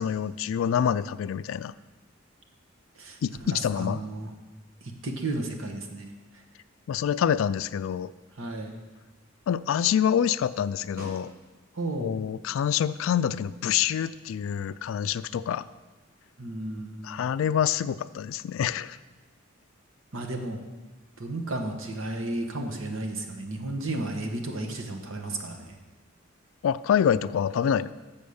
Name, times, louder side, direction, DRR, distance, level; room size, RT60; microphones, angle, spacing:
voice 1, 0.0-1.7 3.2-4.0 6.9-8.1 9.5-11.3 12.0-15.7 17.0-19.0 26.6-27.9, left 8 dB, 75° left, 16 dB, 0.3 m, -26 dB
voice 2, 2.9-4.3 4.8-6.4 8.3-8.8 11.7-12.1 16.4-17.3 20.1-20.6 21.2-25.7, right 2 dB, 75° right, 3 dB, 1.1 m, -33 dB
Snare drum, 11.0-11.9 16.3-16.4, right 1 dB, 45° right, 1.6 m, -47 dB
7.1 x 6.4 x 6.9 m, 1.2 s
head